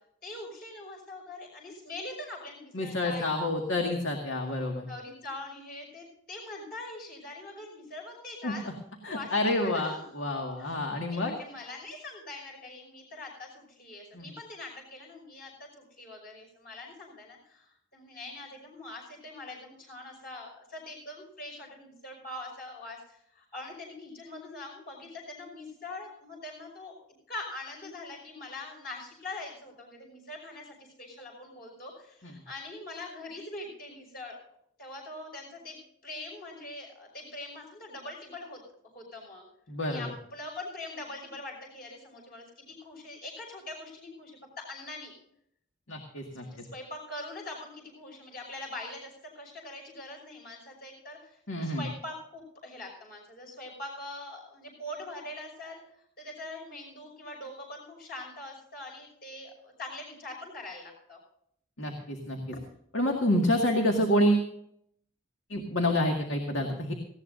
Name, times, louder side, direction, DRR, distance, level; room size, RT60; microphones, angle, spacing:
voice 1, 0.2-3.6 4.9-8.6 9.1-10.2 10.6-10.8 11.1-26.9 27.3-34.4 34.8-35.8 36.0-38.6 38.9-39.4 39.8-45.1 46.4-55.8 56.2-61.2, left 2 dB, 50° left, 0 dB, 5.8 m, -43 dB
voice 2, 2.7-4.9 8.4-8.7 9.0-11.3 14.1-14.3 32.2-32.3 39.7-40.1 45.9-46.5 51.5-51.9 61.8-62.6 62.9-64.5 65.5-66.9, left 1 dB, 80° left, 2 dB, 2.0 m, -28 dB
19.0 x 16.5 x 2.6 m, 0.72 s
head